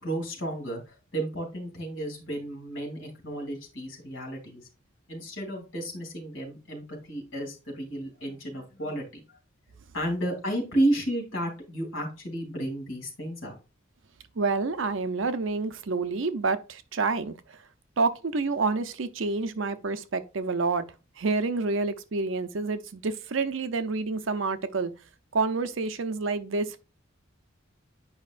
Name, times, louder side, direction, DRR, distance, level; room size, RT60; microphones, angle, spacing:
voice 1, 0.0-4.7 5.1-9.4 9.9-13.5, right 1 dB, 70° left, 2.8 m, -32 dB
voice 2, 14.4-17.6 18.0-20.9 21.2-24.9 25.3-26.8, right 3 dB, 70° right, 0.6 m, -28 dB
8.6 x 5.2 x 2.5 m
head